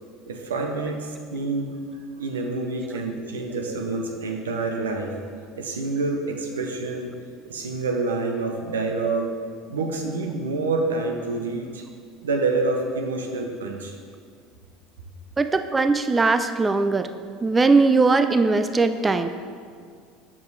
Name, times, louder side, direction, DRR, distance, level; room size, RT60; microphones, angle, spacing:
voice 1, 0.3-1.8 2.2-5.1 5.6-7.1 7.5-9.3 9.7-11.8 12.2-14.0, right 3 dB, 90° right, 3 dB, 0.7 m, -27 dB
voice 2, 15.4-17.1 17.4-19.3, right 3 dB, 20° right, 9 dB, 0.3 m, -20 dB
7.2 x 5.0 x 4.1 m, 2.1 s
hypercardioid pair, 80°, 0 cm